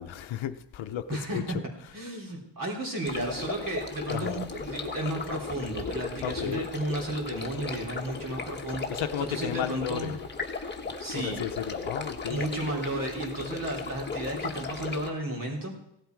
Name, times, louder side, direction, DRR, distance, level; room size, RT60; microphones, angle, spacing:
voice 1, 0.0-2.0 4.1-4.5 6.2-6.7 8.9-10.2 11.1-12.5, left 10 dB, 90° left, 8 dB, 0.9 m, -34 dB
voice 2, 1.1-1.6 1.9-9.0 9.3-10.1 11.0-11.4 12.3-15.7, right 1 dB, 45° right, -1 dB, 3.5 m, -33 dB
sound 1, 3.0-15.1, left 4 dB, 25° left, 1.2 m, -36 dB
17.0 x 12.0 x 4.7 m, 0.84 s
wide cardioid pair, 170°, 45 cm